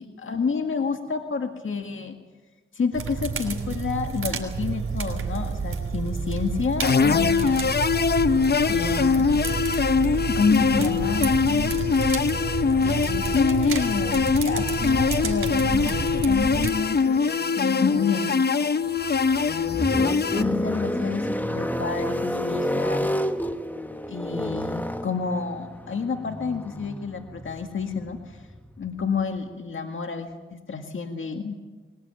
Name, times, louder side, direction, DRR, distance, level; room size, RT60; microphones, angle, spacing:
voice 1, 0.0-2.2 2.7-7.7 8.7-9.4 10.1-11.7 12.8-17.3 17.6-18.3 20.3-23.1 24.1-28.4 28.8-31.6, left 5 dB, 70° left, 5 dB, 1.9 m, -29 dB
sound 1, 2.9-16.7, right 5 dB, 80° right, 3.5 m, -30 dB
sound 2, 6.8-20.4, left 5 dB, 50° left, 0.8 m, -22 dB
sound 3, 19.0-29.2, equal, 10° left, 1.5 m, -30 dB
20.5 x 19.5 x 9.0 m, 1.3 s
cardioid pair, 55°, 21 cm